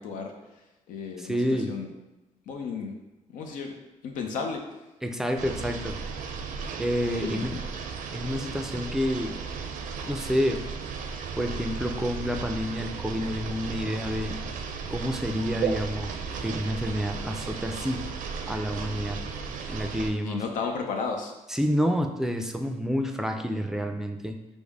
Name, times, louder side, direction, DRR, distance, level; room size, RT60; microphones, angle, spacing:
voice 1, 0.0-1.9 2.5-3.0 3.3-3.7 4.0-4.6 7.1-7.4 20.2-21.3, left 5 dB, 85° left, 2 dB, 0.6 m, -33 dB
voice 2, 1.2-1.7 5.0-6.0 6.8-7.6 8.1-9.4 10.0-10.6 11.4-14.4 14.9-16.1 16.4-18.0 18.5-19.2 19.7-20.4 21.5-24.4, equal, 5° right, 5 dB, 0.4 m, -29 dB
sound 1, 5.4-20.1, right 5 dB, 85° right, 0.5 m, -35 dB
5.2 x 2.1 x 4.7 m, 1.0 s
cardioid pair, 125°, 13 cm